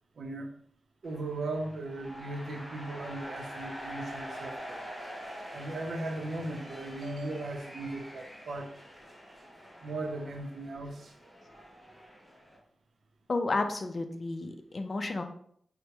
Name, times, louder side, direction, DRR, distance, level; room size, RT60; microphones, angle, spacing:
voice 1, 0.2-0.5 1.0-4.8 5.5-8.7 9.8-11.1, right 2 dB, 75° right, 3 dB, 0.6 m, -37 dB
sound 1, 1.0-12.6, equal, 10° left, 1.2 m, -45 dB
voice 2, 13.3-15.2, left 3 dB, 50° left, 6 dB, 0.4 m, -32 dB
4.5 x 2.0 x 2.9 m, 0.64 s
cardioid pair, 75°, 0 cm